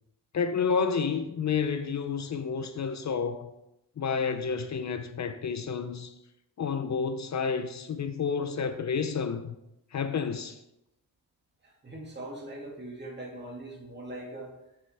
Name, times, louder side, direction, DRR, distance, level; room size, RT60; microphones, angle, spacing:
voice 1, 0.3-3.5 4.0-6.1 6.6-9.6 9.9-10.6, left 6 dB, 50° left, 0.6 m, -30 dB
voice 2, 11.6-14.6, right 1 dB, 30° right, 2.0 m, -41 dB
10.5 x 6.8 x 3.4 m
wide cardioid pair, 155°, 37 cm